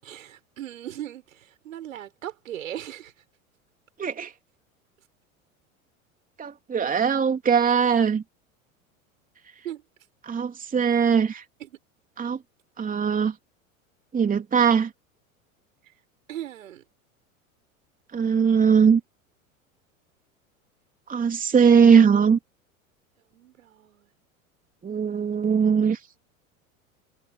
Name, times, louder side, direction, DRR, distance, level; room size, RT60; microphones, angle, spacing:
voice 1, 0.0-3.1 9.6-9.8 11.6-11.8 15.8-15.9 16.3-16.8 23.3-24.1, right 12 dB, 70° right, 7.3 m, -38 dB
voice 2, 4.0-4.3 6.4-8.2 10.2-11.4 12.2-12.4 12.8-13.3 14.1-14.9 18.1-19.0 21.1-22.4 24.8-26.0, right 6 dB, 20° right, 3.2 m, -20 dB
figure-of-eight pair, 85°, 42 cm